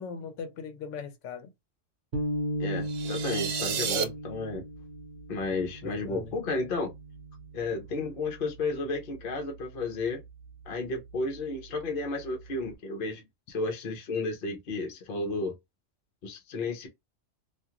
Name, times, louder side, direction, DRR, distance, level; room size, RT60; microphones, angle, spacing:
voice 1, 0.0-1.5 3.6-3.7 5.8-6.3, left 6 dB, 80° left, 1.0 m, -39 dB
sound 1, 2.1-8.6, right 1 dB, 50° right, 0.9 m, -36 dB
voice 2, 2.6-4.6 5.3-6.9 7.5-10.2 10.7-13.2 13.5-15.5 16.2-16.9, left 3 dB, 55° left, 0.8 m, -32 dB
sound 2, 2.8-4.0, right 7 dB, 80° right, 0.9 m, -31 dB
2.4 x 2.4 x 2.8 m
omnidirectional pair, 1.3 m